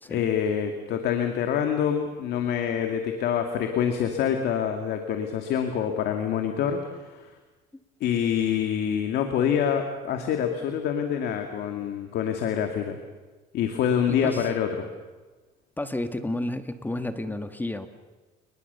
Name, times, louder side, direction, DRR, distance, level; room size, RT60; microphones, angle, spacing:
voice 1, 0.1-7.3 8.0-13.0 13.5-14.8, left 8 dB, 75° left, 5 dB, 2.2 m, -26 dB
voice 2, 14.1-14.5 15.8-17.9, left 1 dB, 10° left, 9 dB, 1.5 m, -31 dB
29.0 x 20.5 x 6.9 m, 1.3 s
cardioid pair, 110°, 17 cm